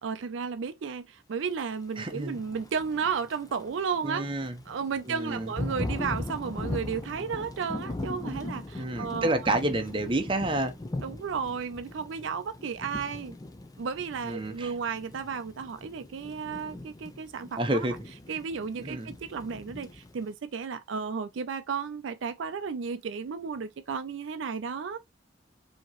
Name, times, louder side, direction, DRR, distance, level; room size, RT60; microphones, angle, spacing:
voice 1, 0.0-4.2 4.7-9.5 11.0-13.4 13.8-17.9 18.3-25.0, right 6 dB, 75° right, 0.4 m, -33 dB
voice 2, 2.0-2.4 4.0-4.6 5.1-5.5 8.8-10.7 14.2-14.7 17.6-17.9 18.8-19.1, right 1 dB, 25° right, 0.8 m, -29 dB
Thunder / Rain, 2.2-20.3, left 2 dB, 20° left, 0.5 m, -40 dB
5.1 x 2.9 x 2.9 m
head